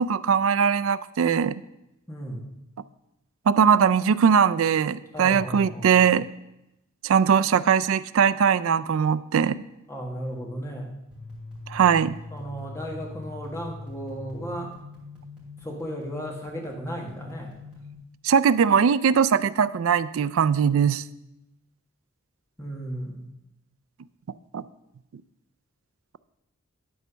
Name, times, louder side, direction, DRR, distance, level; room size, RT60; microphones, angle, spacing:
voice 1, 0.0-1.6 3.5-6.3 7.0-9.6 11.7-12.2 18.2-21.0 24.5-24.6, right 7 dB, 65° right, 15 dB, 0.3 m, -20 dB
voice 2, 2.1-2.5 5.1-6.0 9.9-10.9 12.3-14.7 15.6-17.5 22.6-23.2, equal, 10° left, 0 dB, 1.4 m, -35 dB
sound 1, 11.1-17.9, left 3 dB, 5° right, 2.9 m, -42 dB
11.0 x 4.5 x 6.1 m, 0.90 s
head